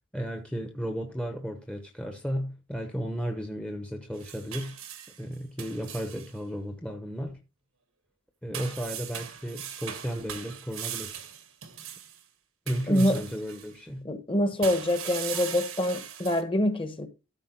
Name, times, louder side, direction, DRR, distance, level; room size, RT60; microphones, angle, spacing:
voice 1, 0.1-4.8 5.2-7.4 8.4-11.2 12.7-14.1, equal, 5° left, 0.9 m, -34 dB
sound 1, 4.1-6.3 8.5-12.2 12.7-13.7 14.6-16.4, right 9 dB, 85° right, 1.5 m, -39 dB
voice 2, 12.9-13.2 14.0-17.1, left 1 dB, 25° left, 1.2 m, -25 dB
13.0 x 4.5 x 4.5 m
head